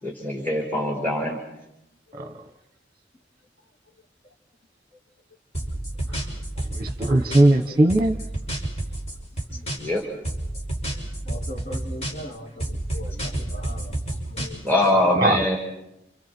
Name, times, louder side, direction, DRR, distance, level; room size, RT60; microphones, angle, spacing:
voice 1, 0.0-1.4 9.7-10.0 14.6-15.6, left 1 dB, 10° left, 5.0 m, -22 dB
voice 2, 2.1-2.4 6.1-6.2 6.6-8.2 15.2-15.4, right 1 dB, 30° right, 1.2 m, -20 dB
sound 1, 5.5-7.6 7.9-10.0 10.2-12.3 12.6-14.9, right 1 dB, 35° left, 6.3 m, -30 dB
voice 3, 11.3-14.0 14.3-14.6 14.9-15.0, equal, 50° left, 2.2 m, -39 dB
29.5 x 29.0 x 4.5 m
head